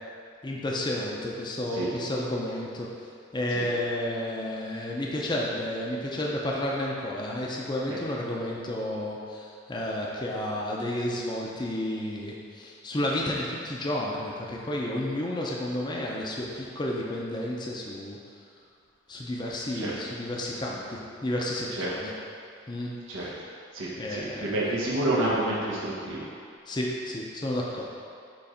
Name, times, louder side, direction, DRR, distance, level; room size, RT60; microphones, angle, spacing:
voice 1, 0.4-2.9 3.3-18.2 19.1-22.1 22.7-22.9 24.0-24.5 26.7-27.8, left 1 dB, 20° left, -3 dB, 0.6 m, -31 dB
voice 2, 19.7-20.1 21.7-21.9 23.1-23.3 23.7-26.3, right 1 dB, 85° right, -7 dB, 1.1 m, -29 dB
6.9 x 3.1 x 5.0 m, 2.4 s
head